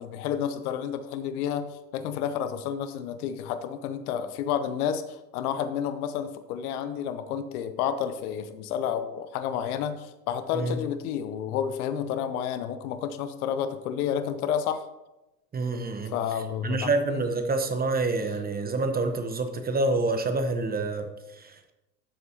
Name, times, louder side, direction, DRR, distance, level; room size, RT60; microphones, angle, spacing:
voice 1, 0.0-14.9 16.1-17.2, left 8 dB, 60° left, 11 dB, 0.9 m, -30 dB
voice 2, 15.5-16.1 16.6-21.7, right 3 dB, 20° right, 7 dB, 1.0 m, -27 dB
13.0 x 7.7 x 2.9 m, 0.98 s
hypercardioid pair, 80°, 49 cm